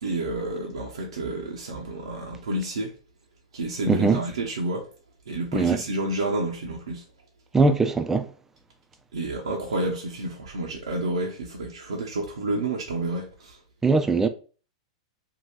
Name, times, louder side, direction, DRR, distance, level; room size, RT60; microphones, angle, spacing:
voice 1, 0.0-2.9 3.5-4.9 5.3-7.0 9.1-13.6, right 2 dB, 80° right, 0.5 m, -29 dB
voice 2, 3.9-4.2 5.5-5.8 7.5-8.3 13.8-14.3, right 3 dB, 10° right, 0.3 m, -20 dB
2.7 x 2.2 x 3.3 m
hypercardioid pair, 100°, 3 cm